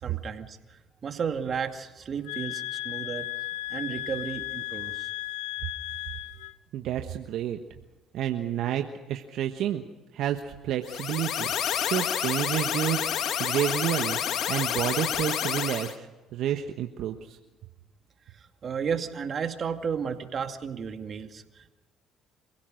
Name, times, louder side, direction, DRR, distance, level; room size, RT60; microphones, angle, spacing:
voice 1, 0.0-3.3 3.7-5.1 18.3-21.7, right 6 dB, 50° right, 6 dB, 2.3 m, -33 dB
sound 1, 2.2-6.6, left 18 dB, 85° left, 0.8 m, -35 dB
voice 2, 6.7-7.6 8.1-9.8 10.1-11.5 11.8-13.0 13.4-14.2 14.5-16.1 16.3-17.4, right 11 dB, 70° right, 5 dB, 1.3 m, -29 dB
sound 2, 10.8-15.9, left 9 dB, 65° left, 1.7 m, -29 dB
28.0 x 16.5 x 6.5 m, 1.1 s
supercardioid pair, 65°, 0 cm